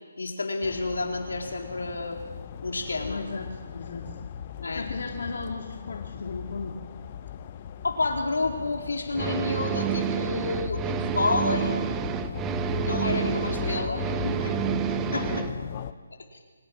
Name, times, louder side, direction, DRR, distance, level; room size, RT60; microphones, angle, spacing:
voice 1, 0.2-2.2 2.6-3.2 4.6-4.9 7.8-11.8 12.8-14.6 14.9-15.3, left 3 dB, 85° left, 2 dB, 3.8 m, -29 dB
sound 1, 0.6-15.9, left 8 dB, 30° left, 0.9 m, -38 dB
voice 2, 3.0-4.2 4.7-6.8 15.2-15.7, left 3 dB, 65° left, 1 dB, 2.4 m, -36 dB
sound 2, 9.1-15.5, right 8 dB, 15° right, 0.8 m, -29 dB
24.5 x 17.5 x 6.2 m, 1.5 s
hypercardioid pair, 160°, 0 cm